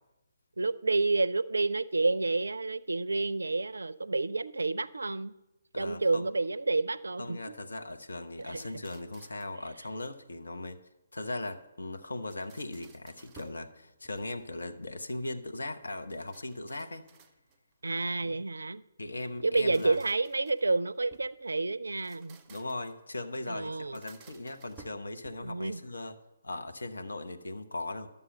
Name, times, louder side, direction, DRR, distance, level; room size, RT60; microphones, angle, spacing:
voice 1, 0.6-5.3 5.8-7.5 8.4-8.8 17.8-18.8 19.4-22.4 23.5-24.0 25.4-25.8, right 3 dB, 65° right, 18 dB, 0.4 m, -29 dB
voice 2, 5.7-6.2 7.2-10.8 11.1-17.1 18.2-18.4 19.0-20.0 22.5-26.1 26.4-28.1, left 2 dB, 65° left, 7 dB, 0.9 m, -39 dB
sound 1, 8.4-9.6 12.0-13.7 14.0-14.6 16.1-17.7 19.3-21.4 21.9-23.0 23.8-25.6, right 4 dB, 20° right, 0.6 m, -57 dB
11.5 x 7.0 x 5.4 m, 0.98 s
figure-of-eight pair, 135°, 0 cm